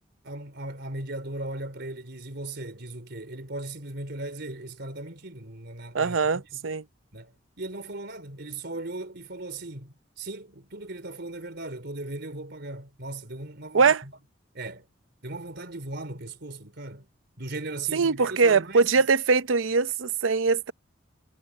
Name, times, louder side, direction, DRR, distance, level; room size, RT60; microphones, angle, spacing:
voice 1, 0.2-6.6 7.1-14.1 14.5-14.9 15.2-17.1 17.4-19.0, right 2 dB, 60° right, 4.0 m, -38 dB
voice 2, 5.9-6.8 13.7-14.0 17.9-20.7, right 4 dB, 85° right, 0.6 m, -22 dB
head